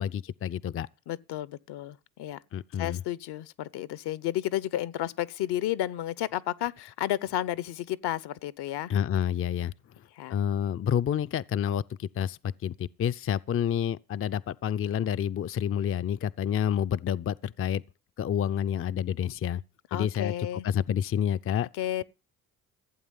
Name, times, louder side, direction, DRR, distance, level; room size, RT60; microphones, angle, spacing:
voice 1, 0.0-0.9 2.5-3.0 8.9-9.7 10.3-17.8 18.2-19.6 19.9-20.3 20.6-21.7, left 9 dB, 30° left, 0.5 m, -29 dB
voice 2, 1.1-2.4 2.8-8.9 10.1-10.4 19.9-20.7 21.8-22.0, left 13 dB, 60° left, 0.9 m, -32 dB
15.5 x 8.6 x 5.5 m
hypercardioid pair, 50°, 44 cm